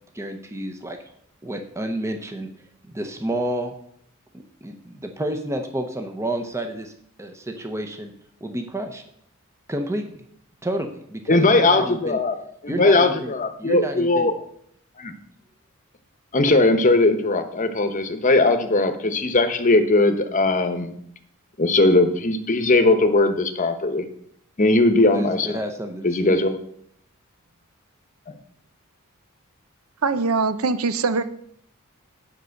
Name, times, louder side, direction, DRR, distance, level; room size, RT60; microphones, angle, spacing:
voice 1, 0.2-1.0 1.4-2.5 2.9-3.7 4.6-6.9 7.2-8.1 8.4-9.0 9.7-10.2 10.6-12.2 12.7-13.3 13.6-14.3 25.0-26.5, right 1 dB, 15° right, 5 dB, 0.8 m, -30 dB
voice 2, 11.3-12.4 12.6-14.3 15.0-15.1 16.3-20.9 21.6-24.0 24.6-25.6 26.0-26.6, left 2 dB, 35° left, 7 dB, 1.0 m, -19 dB
voice 3, 30.0-31.2, right 4 dB, 80° right, 12 dB, 0.7 m, -22 dB
9.6 x 5.4 x 6.5 m, 0.68 s
head